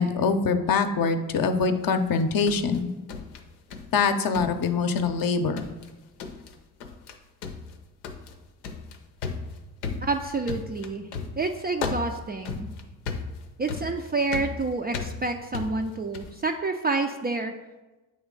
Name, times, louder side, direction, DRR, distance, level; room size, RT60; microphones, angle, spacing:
voice 1, 0.0-2.9 3.9-5.6, left 5 dB, 50° left, 8 dB, 0.7 m, -24 dB
sound 1, 2.1-4.0 4.3-5.3 5.6-5.9 6.2-6.5 6.8-7.1 7.4-16.4, left 5 dB, 90° left, 0.6 m, -36 dB
voice 2, 10.0-11.1 11.4-12.7 13.6-17.5, right 3 dB, 25° right, 4 dB, 0.3 m, -28 dB
8.1 x 3.1 x 3.7 m, 1.1 s
supercardioid pair, 55°, 47 cm